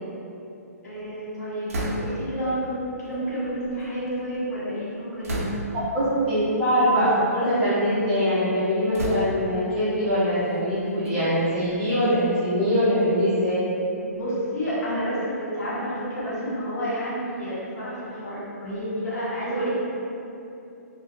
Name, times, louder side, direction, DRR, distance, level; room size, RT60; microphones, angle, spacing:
voice 1, 0.8-5.6 14.0-19.7, equal, 75° left, -10 dB, 1.2 m, -30 dB
sound 1, 1.7-2.4 3.3-4.4 5.2-5.9 6.7-6.9 7.4-8.1 8.9-9.7 10.4-12.3, right 1 dB, 60° right, 0.6 m, -34 dB
voice 2, 5.7-13.6, equal, 15° right, -13 dB, 0.7 m, -22 dB
2.5 x 2.2 x 3.6 m, 2.8 s
hypercardioid pair, 165°, 9 cm